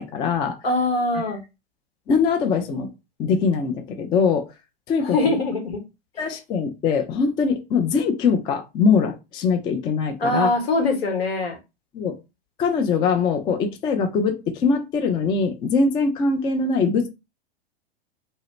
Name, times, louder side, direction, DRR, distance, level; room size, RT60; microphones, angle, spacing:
voice 1, 0.0-0.6 2.1-2.9 3.2-4.5 4.9-5.3 6.2-10.5 11.9-12.2 12.6-17.1, left 5 dB, 15° left, 5 dB, 0.3 m, -22 dB
voice 2, 0.6-1.4 5.1-5.8 10.2-11.6, left 2 dB, 75° left, 4 dB, 1.1 m, -22 dB
2.7 x 2.0 x 3.1 m, 0.25 s
hypercardioid pair, 105°, 31 cm